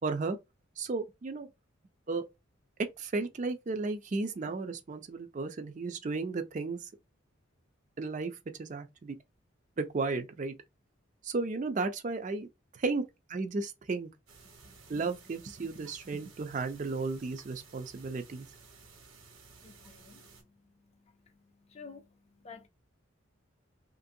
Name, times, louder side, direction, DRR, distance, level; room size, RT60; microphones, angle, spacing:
voice 1, 0.0-0.4 0.8-1.5 2.1-2.3 3.0-6.9 8.0-9.2 9.8-10.6 11.2-12.5 12.7-13.0 13.3-14.1 14.9-18.5, right 3 dB, 35° right, 0.4 m, -34 dB
sound 1, 14.3-20.4, right 4 dB, 85° right, 1.2 m, -55 dB
voice 2, 19.6-20.2 21.7-22.0 22.4-22.7, left 5 dB, 30° left, 0.4 m, -49 dB
2.9 x 2.5 x 2.6 m
head